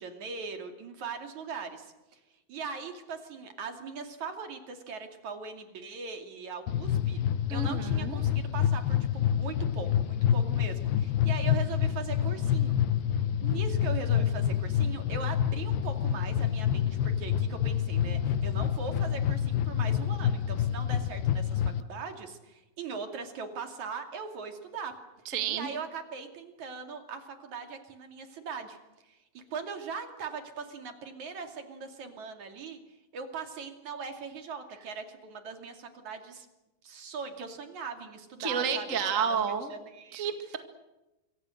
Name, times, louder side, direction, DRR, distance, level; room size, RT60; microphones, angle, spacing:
voice 1, 0.0-2.2 2.5-7.2 7.5-12.8 13.4-24.9 25.5-28.8 29.0-32.8 33.1-36.5 36.8-40.3, right 5 dB, 50° right, 5 dB, 3.6 m, -40 dB
sound 1, 6.7-21.8, left 10 dB, 80° left, 2.9 m, -28 dB
voice 2, 7.5-8.2 25.2-25.7 38.4-39.7 40.1-40.6, right 6 dB, 30° right, 7 dB, 1.4 m, -30 dB
27.0 x 24.5 x 6.5 m, 1.0 s
omnidirectional pair, 4.4 m